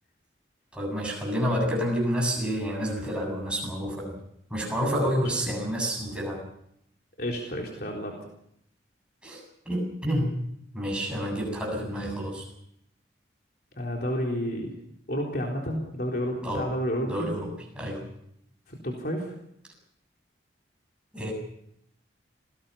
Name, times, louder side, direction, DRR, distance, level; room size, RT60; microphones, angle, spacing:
voice 1, 0.7-4.1 4.5-6.4 9.2-10.3 10.7-12.5 16.4-16.6 17.1-18.0 21.1-21.3, equal, 5° right, -1 dB, 7.6 m, -29 dB
voice 2, 5.0-5.4 7.2-8.2 13.8-14.7 15.1-17.3 18.7-19.3, equal, 50° left, -1 dB, 4.0 m, -30 dB
27.0 x 19.5 x 5.7 m, 0.73 s
head